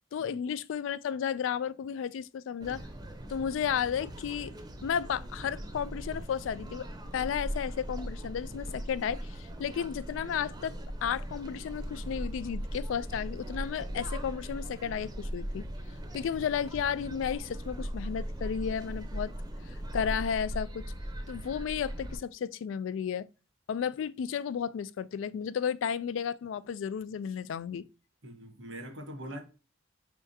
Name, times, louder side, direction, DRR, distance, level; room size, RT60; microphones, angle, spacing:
voice 1, 0.1-2.8 3.3-4.5 4.8-6.9 7.1-10.7 11.0-15.7 16.1-19.3 19.7-20.9 21.3-23.3 23.7-27.9, left 8 dB, 85° left, 0.3 m, -33 dB
sound 1, 2.6-22.2, equal, 20° right, 0.6 m, -39 dB
voice 2, 28.2-29.4, right 1 dB, 80° right, 1.3 m, -43 dB
4.5 x 3.5 x 2.7 m
head